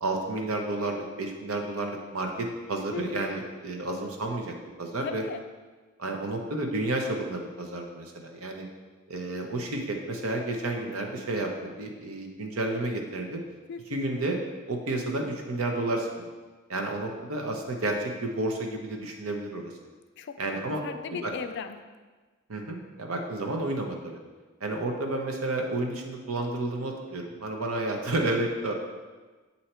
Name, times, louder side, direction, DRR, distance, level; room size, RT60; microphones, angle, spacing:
voice 1, 0.0-5.2 6.0-8.7 9.1-13.4 13.9-14.4 14.7-16.1 16.7-19.7 20.4-20.8 21.2-21.3 22.5-24.2 24.6-28.7, right 2 dB, 85° right, 2 dB, 0.8 m, -31 dB
voice 2, 2.9-3.3 5.0-5.4 13.7-14.0 20.2-20.4 20.8-21.8, left 5 dB, 55° left, 8 dB, 0.3 m, -37 dB
7.8 x 2.8 x 4.3 m, 1.3 s
head